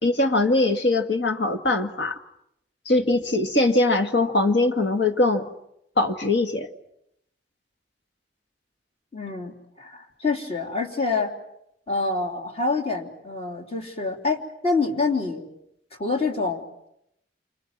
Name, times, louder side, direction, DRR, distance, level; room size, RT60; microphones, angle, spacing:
voice 1, 0.0-2.2 2.9-5.5 6.0-6.7, left 2 dB, 70° left, 6 dB, 2.1 m, -21 dB
voice 2, 9.1-11.3 11.9-15.5 16.0-16.6, left 3 dB, 35° left, 2 dB, 3.4 m, -26 dB
28.5 x 26.0 x 7.6 m, 0.79 s
head